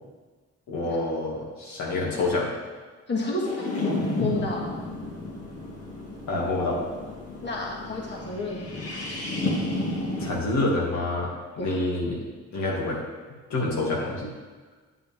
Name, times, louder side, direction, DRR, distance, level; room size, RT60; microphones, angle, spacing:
voice 1, 0.7-2.5 4.2-4.3 6.3-6.8 10.2-12.2 12.5-13.0 13.5-14.3, left 2 dB, 70° left, -3 dB, 2.4 m, -27 dB
voice 2, 3.1-3.7 4.2-4.6 7.4-8.9 11.6-11.8, left 2 dB, 35° left, -3 dB, 2.1 m, -30 dB
sound 1, 3.4-10.3, left 2 dB, 50° left, 2.2 m, -32 dB
9.0 x 8.3 x 3.6 m, 1.4 s
cardioid pair, 90°, 30 cm